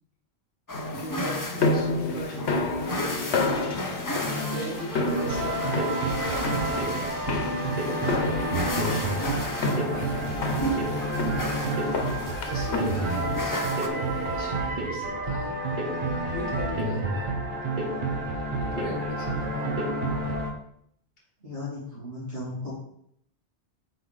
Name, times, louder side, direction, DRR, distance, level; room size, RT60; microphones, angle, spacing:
sound 1, 0.7-14.6, left 2 dB, 90° left, 1.2 m, -31 dB
sound 2, 0.7-13.9, left 1 dB, 20° left, 0.7 m, -35 dB
voice 1, 1.0-3.6 4.5-7.1 7.7-12.0 12.4-15.5 16.2-17.4 18.6-19.7, equal, 60° left, -3 dB, 1.9 m, -39 dB
sound 3, 4.2-20.5, right 2 dB, 50° right, 1.4 m, -29 dB
voice 2, 21.4-22.7, left 2 dB, 85° right, -9 dB, 3.3 m, -36 dB
7.9 x 4.6 x 4.1 m, 0.70 s
omnidirectional pair, 1.1 m